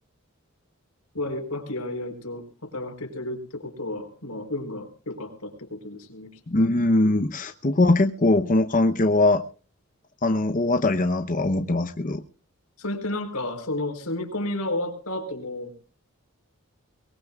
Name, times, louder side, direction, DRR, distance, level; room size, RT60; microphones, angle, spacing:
voice 1, 1.1-6.3 12.8-15.8, left 1 dB, 85° left, 4 dB, 4.3 m, -32 dB
voice 2, 6.5-9.4 10.2-12.2, left 2 dB, 40° left, 6 dB, 0.8 m, -21 dB
23.0 x 19.0 x 2.4 m, 0.36 s
head